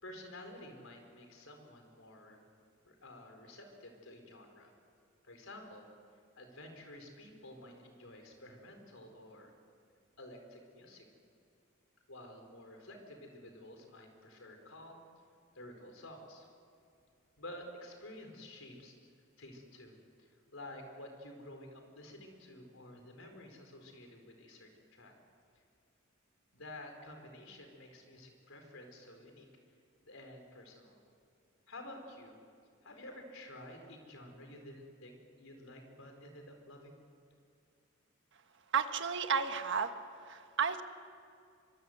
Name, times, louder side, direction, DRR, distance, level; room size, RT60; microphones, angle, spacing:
voice 1, 0.0-2.4 2.8-4.7 5.2-5.9 6.4-9.5 10.2-11.0 12.1-15.0 15.5-16.5 17.4-18.9 19.4-19.9 20.2-25.1 25.5-25.6 26.5-29.5 30.0-31.0 31.7-32.4 32.8-37.0, left 1 dB, 75° left, 4 dB, 4.6 m, -51 dB
voice 2, 38.7-39.9 40.2-40.8, right 6 dB, 60° right, 8 dB, 1.4 m, -32 dB
24.5 x 24.0 x 8.0 m, 2.4 s
head